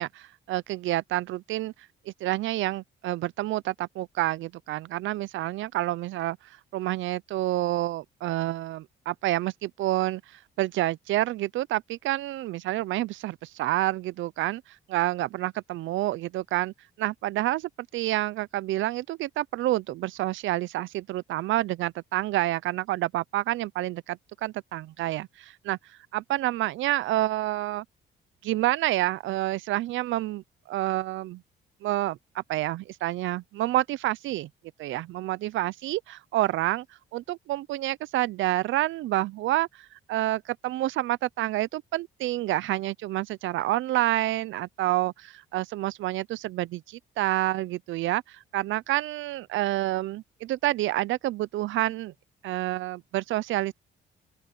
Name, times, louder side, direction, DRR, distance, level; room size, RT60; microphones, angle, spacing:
voice 1, 0.0-1.7 2.1-27.8 28.4-31.4 31.8-34.5 34.8-36.9 37.1-52.1 52.4-53.7, right 16 dB, 75° right, 0.5 m, -28 dB
open air
cardioid pair, 90°, 20 cm